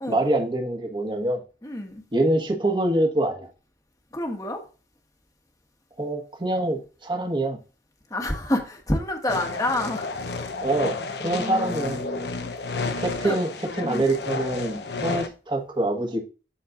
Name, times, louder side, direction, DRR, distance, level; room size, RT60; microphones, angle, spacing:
voice 1, 0.1-1.4 2.1-3.5 6.0-7.6 10.6-12.0 13.0-13.5 13.8-16.2, right 1 dB, 25° right, 1.4 m, -25 dB
voice 2, 1.6-2.0 4.1-4.6 8.1-10.1 11.4-12.5 12.8-13.4 13.8-14.0, left 1 dB, 20° left, 1.3 m, -29 dB
sound 1, 9.3-15.3, left 3 dB, 70° left, 0.9 m, -31 dB
12.5 x 4.2 x 2.5 m
head